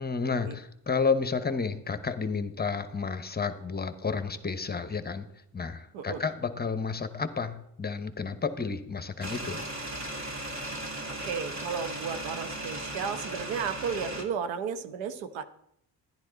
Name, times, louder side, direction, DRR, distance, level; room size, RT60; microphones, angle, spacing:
voice 1, 0.0-5.3 5.5-9.6, left 5 dB, 20° left, 10 dB, 0.9 m, -31 dB
sound 1, 9.2-14.2, right 1 dB, 35° right, 2.5 m, -37 dB
voice 2, 11.1-15.4, right 6 dB, 75° right, 10 dB, 1.0 m, -34 dB
11.0 x 11.0 x 4.0 m, 0.73 s
hypercardioid pair, 65°, 46 cm